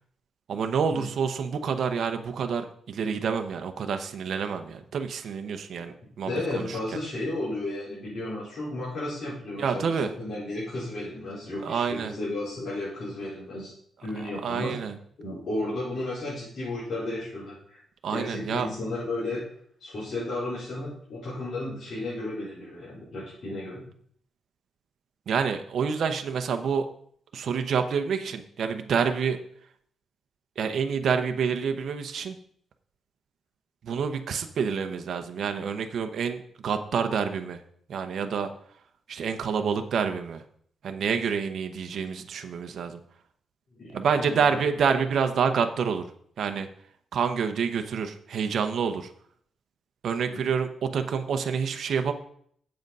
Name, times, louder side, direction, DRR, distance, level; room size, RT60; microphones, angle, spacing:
voice 1, 0.5-6.7 9.6-10.1 11.6-12.1 14.4-14.9 18.0-18.7 25.3-26.9 27.3-29.4 30.6-32.4 33.8-37.6 37.9-38.5 39.1-40.4 40.8-43.0 43.9-46.0 46.4-46.7 47.1-49.1 50.0-52.1, right 6 dB, 60° right, 6 dB, 0.8 m, -28 dB
voice 2, 6.3-13.7 14.0-14.7 15.2-17.8 18.1-19.4 19.8-23.8 43.7-44.6 50.2-50.4, left 2 dB, 45° left, -10 dB, 4.6 m, -33 dB
7.9 x 7.8 x 5.4 m, 0.63 s
wide cardioid pair, 150°, 0 cm